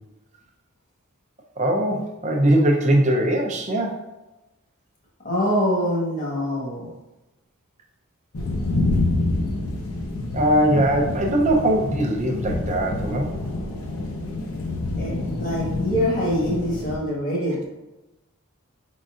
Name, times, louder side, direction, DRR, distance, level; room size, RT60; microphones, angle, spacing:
voice 1, 1.6-4.0 10.3-13.3, right 1 dB, 35° right, 1 dB, 0.6 m, -21 dB
voice 2, 5.2-6.9 15.0-17.6, equal, 40° left, -4 dB, 1.3 m, -24 dB
sound 1, 8.3-17.0, left 2 dB, 75° left, 0.8 m, -27 dB
5.3 x 3.8 x 2.5 m, 1.0 s
head